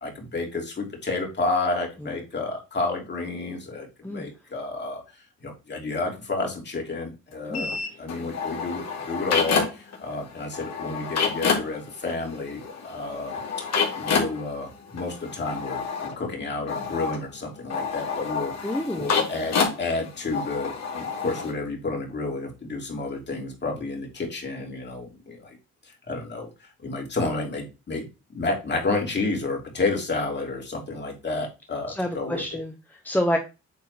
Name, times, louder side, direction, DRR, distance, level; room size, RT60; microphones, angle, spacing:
voice 1, 0.0-5.0 5.4-13.6 13.9-18.7 18.9-25.6 26.1-26.5 26.8-28.0 28.3-32.6, left 3 dB, 35° left, 1 dB, 3.1 m, -30 dB
sound 1, 7.5-10.0 10.2-21.5, left 5 dB, 60° left, 2.8 m, -29 dB
voice 2, 18.6-19.3 31.9-33.4, left 1 dB, 5° left, 3 dB, 1.1 m, -28 dB
8.7 x 3.7 x 4.2 m, 0.28 s
cardioid pair, 90°, 30 cm